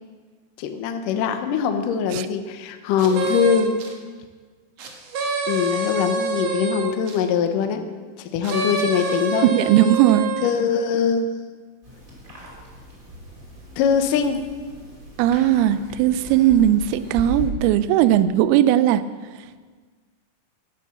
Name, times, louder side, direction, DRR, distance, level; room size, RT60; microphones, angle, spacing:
voice 1, 0.6-3.7 5.5-7.8 8.2-9.5 10.4-11.3 13.8-14.4, left 7 dB, 75° left, 6 dB, 2.0 m, -22 dB
sound 1, 3.0-3.9 4.8-7.2 8.4-10.6, right 3 dB, 65° right, 1.7 m, -26 dB
voice 2, 9.5-10.3 15.2-19.0, right 11 dB, 85° right, 14 dB, 2.2 m, -18 dB
sound 2, 11.8-17.5, right 1 dB, 20° right, 2.7 m, -38 dB
11.5 x 10.5 x 7.2 m, 1.5 s
omnidirectional pair, 4.9 m